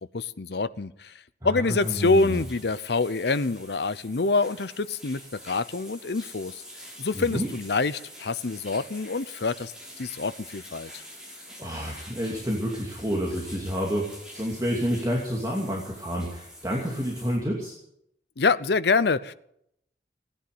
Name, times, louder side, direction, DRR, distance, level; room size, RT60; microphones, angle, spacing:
voice 1, 0.1-1.1 1.4-6.6 7.0-9.7 10.0-11.0 18.4-19.3, left 3 dB, 65° left, 15 dB, 0.7 m, -26 dB
voice 2, 1.4-2.4 7.1-7.5 11.6-17.7, equal, 20° right, -2 dB, 2.6 m, -29 dB
sound 1, 1.8-17.4, equal, 5° right, 5.9 m, -46 dB
18.0 x 10.0 x 7.8 m, 0.75 s
head